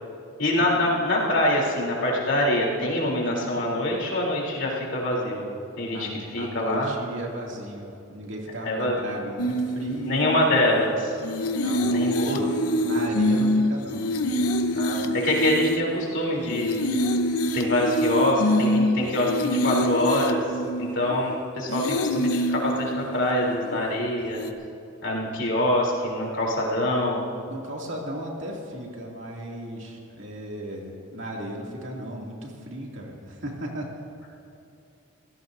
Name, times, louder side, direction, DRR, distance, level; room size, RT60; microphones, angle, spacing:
voice 1, 0.4-5.4 5.8-6.9 8.6-9.1 10.0-11.1 11.9-12.4 14.7-16.8 17.5-20.4 20.8-24.5 25.0-27.2, left 1 dB, 55° left, -3 dB, 3.5 m, -25 dB
voice 2, 5.9-10.6 11.5-12.6 12.8-14.4 27.5-34.1, right 1 dB, 55° right, -2 dB, 2.6 m, -36 dB
sound 1, 9.4-10.9 11.2-16.1 16.5-21.3 21.7-24.0 24.4-24.5, equal, 90° left, 0.9 m, -25 dB
26.0 x 17.0 x 2.7 m, 2.6 s
head